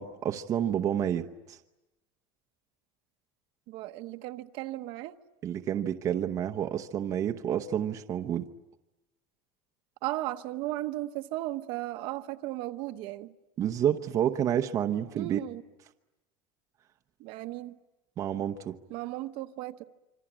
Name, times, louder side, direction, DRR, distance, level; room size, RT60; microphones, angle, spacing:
voice 1, 0.0-1.6 5.4-8.5 13.6-15.4 18.2-18.8, right 10 dB, 30° right, 0.9 m, -29 dB
voice 2, 3.7-5.2 10.0-13.3 15.1-15.6 17.2-17.7 18.9-19.8, right 16 dB, 50° right, 1.0 m, -35 dB
26.5 x 25.5 x 8.8 m
cardioid pair, 175°, 11 cm